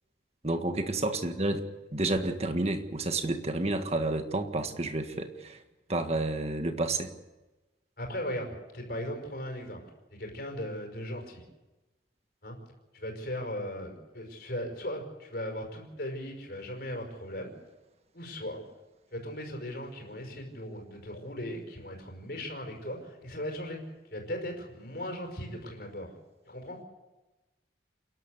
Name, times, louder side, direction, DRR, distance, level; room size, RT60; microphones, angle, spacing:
voice 1, 0.4-1.6 1.9-5.6 5.9-7.1, right 2 dB, 35° right, 7 dB, 1.6 m, -30 dB
voice 2, 8.0-9.8 10.1-11.4 12.4-12.6 12.9-17.5 18.1-18.6 19.1-23.8 24.1-26.1 26.5-26.8, left 1 dB, 55° left, 2 dB, 5.3 m, -38 dB
28.5 x 12.0 x 8.1 m, 1.1 s
head